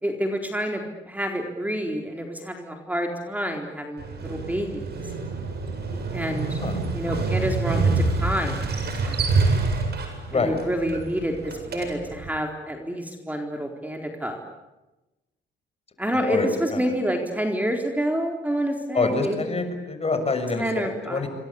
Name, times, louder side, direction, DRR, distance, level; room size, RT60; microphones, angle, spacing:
voice 1, 0.0-4.8 6.1-6.6 6.9-8.8 9.0-9.3 10.3-14.4 16.0-19.5 20.5-21.3, equal, 10° right, 3 dB, 4.1 m, -28 dB
Motorcycle, 4.0-12.3, right 3 dB, 55° right, 8.0 m, -27 dB
voice 2, 18.9-21.3, left 3 dB, 30° left, 7 dB, 6.8 m, -26 dB
28.5 x 23.5 x 8.7 m, 1.0 s
cardioid pair, 90°, 20 cm